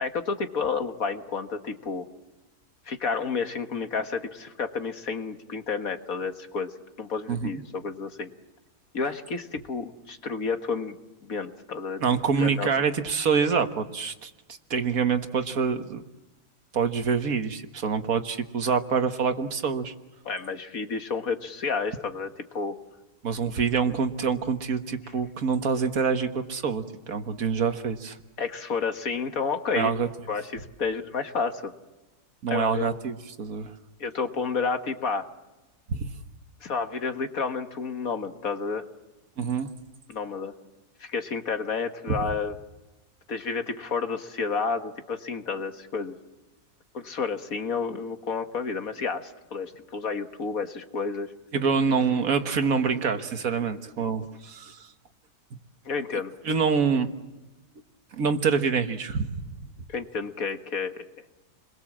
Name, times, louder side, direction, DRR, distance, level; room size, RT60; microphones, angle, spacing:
voice 1, 0.0-2.1 2.9-6.7 7.0-8.3 8.9-11.0 11.2-12.0 12.4-12.7 20.3-22.8 28.4-29.9 30.3-31.7 32.5-32.9 34.0-35.3 36.6-38.9 40.1-40.5 41.0-42.6 43.3-46.2 46.9-51.3 55.9-56.3 59.9-61.0, left 5 dB, 70° left, 7 dB, 2.0 m, -30 dB
voice 2, 7.3-7.6 12.0-14.3 14.7-16.0 16.7-19.9 23.2-28.2 29.7-30.1 32.4-33.7 35.9-36.1 39.4-39.7 42.1-42.3 51.5-54.9 56.4-57.1 58.1-59.4, right 6 dB, 70° right, 8 dB, 1.8 m, -26 dB
29.0 x 22.0 x 7.4 m, 1.1 s
omnidirectional pair, 1.6 m